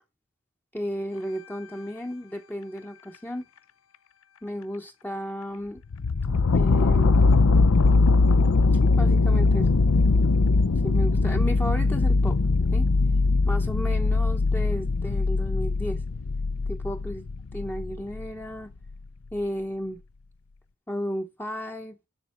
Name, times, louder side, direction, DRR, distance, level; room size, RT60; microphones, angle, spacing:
voice 1, 0.7-3.5 4.4-5.8 6.5-7.2 8.7-9.7 10.8-12.4 12.7-12.9 13.5-16.0 16.7-17.2 17.5-18.7 19.3-20.0 20.9-22.0, equal, 10° left, 0.8 m, -34 dB
sound 1, 5.9-18.3 18.9-19.0, left 3 dB, 80° left, 0.6 m, -21 dB
8.8 x 7.4 x 6.2 m
head